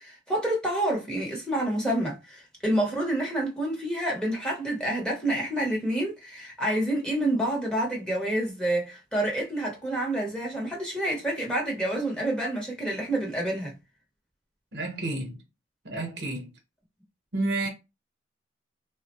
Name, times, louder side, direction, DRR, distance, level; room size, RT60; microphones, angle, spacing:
voice 1, 0.0-13.7, right 1 dB, 5° left, 0.8 m, -28 dB
voice 2, 14.7-15.4 15.8-16.5 17.3-17.7, right 2 dB, 60° right, 0.9 m, -30 dB
3.5 x 2.1 x 2.9 m
head